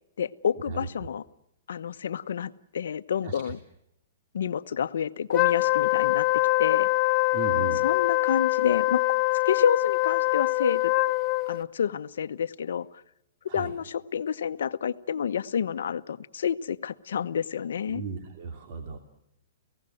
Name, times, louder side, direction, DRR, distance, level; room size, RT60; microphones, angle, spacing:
voice 1, 0.2-1.2 1.7-3.6 4.3-6.3 6.6-6.9 7.8-9.0 9.3-10.9 11.5-12.9 13.5-18.0, left 8 dB, 75° left, 12 dB, 0.9 m, -29 dB
voice 2, 3.2-3.5 7.3-7.8 13.5-13.7 17.9-19.0, right 5 dB, 50° right, 4 dB, 2.7 m, -35 dB
Wind instrument woodwind instrument, 5.3-11.6, left 22 dB, 30° left, 1.0 m, -24 dB
30.0 x 16.5 x 7.8 m, 0.81 s
hypercardioid pair, 145°, 0 cm